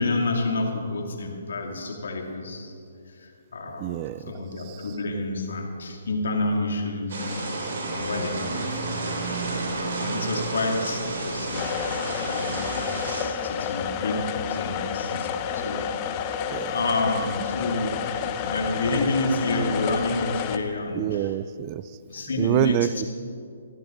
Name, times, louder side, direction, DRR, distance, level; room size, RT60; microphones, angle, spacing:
voice 1, 0.0-2.7 3.2-4.0 4.3-7.5 7.9-9.1 10.0-11.7 12.0-15.9 16.2-16.3 16.7-18.0 18.4-21.3 22.1-22.9, left 2 dB, 75° left, 1 dB, 2.5 m, -29 dB
voice 2, 3.8-4.9 16.5-16.7 20.9-21.8 22.4-23.1, right 13 dB, 30° right, 15 dB, 0.3 m, -27 dB
sound 1, 7.1-13.2, right 2 dB, 60° right, 4.2 m, -31 dB
sound 2, 11.5-20.6, left 8 dB, 30° left, 0.9 m, -30 dB
15.5 x 15.5 x 3.9 m, 2.5 s
hypercardioid pair, 145°, 0 cm